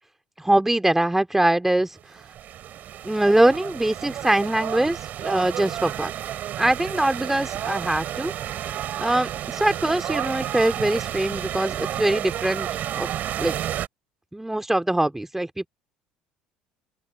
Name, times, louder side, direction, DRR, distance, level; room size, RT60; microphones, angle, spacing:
voice 1, 0.4-2.0 3.0-6.1 6.6-8.3 9.0-13.1 13.4-13.6 14.3-15.7, right 1 dB, 10° right, 3.5 m, -23 dB
sound 1, 2.0-13.9, right 11 dB, 50° right, 7.0 m, -31 dB
open air
hypercardioid pair, 65°, 4 cm